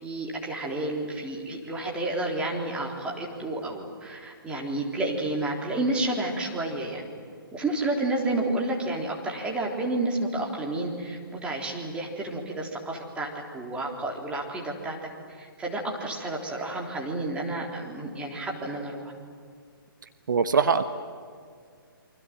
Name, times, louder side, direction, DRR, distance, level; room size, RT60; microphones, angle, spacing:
voice 1, 0.0-7.1 7.5-15.1 15.4-19.1, right 2 dB, 10° right, -1 dB, 3.7 m, -30 dB
voice 2, 20.3-20.8, right 5 dB, 55° right, 9 dB, 1.2 m, -21 dB
28.5 x 25.0 x 7.6 m, 2.2 s
figure-of-eight pair, 135°, 12 cm